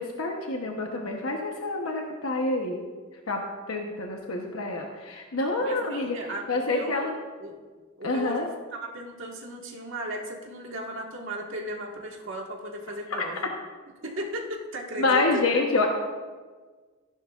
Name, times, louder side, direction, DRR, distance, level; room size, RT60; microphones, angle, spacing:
voice 1, 0.0-2.8 3.3-3.4 3.7-6.2 6.5-7.1 8.0-8.5 13.1-13.2 15.0-15.9, left 3 dB, 85° left, 1 dB, 1.0 m, -27 dB
voice 2, 5.6-7.1 7.4-7.6 8.0-13.4 14.0-15.4, equal, 65° right, -1 dB, 1.8 m, -36 dB
15.0 x 11.0 x 2.5 m, 1.4 s
head